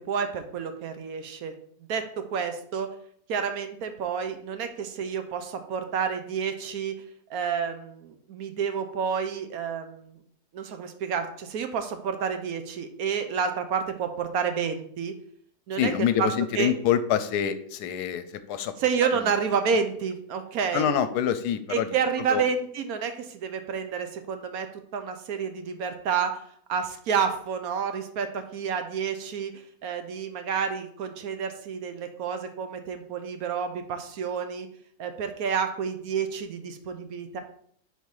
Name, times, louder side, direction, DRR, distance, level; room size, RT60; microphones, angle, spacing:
voice 1, 0.1-1.5 1.9-2.9 3.3-7.0 7.3-10.2 10.5-15.1 15.7-16.3 16.6-16.7 18.8-20.9 21.7-24.7 24.9-26.3 26.7-29.5 29.8-34.7 35.0-37.4, right 6 dB, 70° right, 7 dB, 1.1 m, -29 dB
voice 2, 15.7-18.7 19.1-19.3 20.7-21.9 22.3-22.4, left 9 dB, 80° left, 11 dB, 1.1 m, -26 dB
5.3 x 4.3 x 4.7 m, 0.62 s
omnidirectional pair, 1.7 m